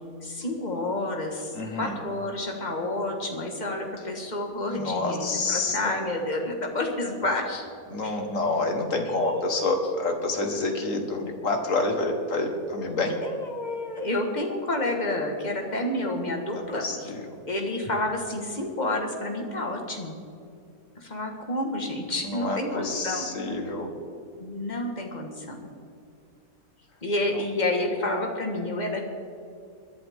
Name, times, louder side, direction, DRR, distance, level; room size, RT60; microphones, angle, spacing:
voice 1, 0.2-7.7 8.0-8.2 8.6-8.7 9.1-9.5 13.2-16.8 17.5-20.2 21.0-23.2 24.4-25.7 27.0-29.1, left 1 dB, 30° left, 2 dB, 1.8 m, -29 dB
voice 2, 1.5-2.0 4.7-5.9 7.9-13.2 16.5-17.3 22.2-23.9 27.3-27.4, left 2 dB, 60° left, 3 dB, 1.9 m, -28 dB
22.0 x 11.0 x 3.7 m, 2.5 s
omnidirectional pair, 1.6 m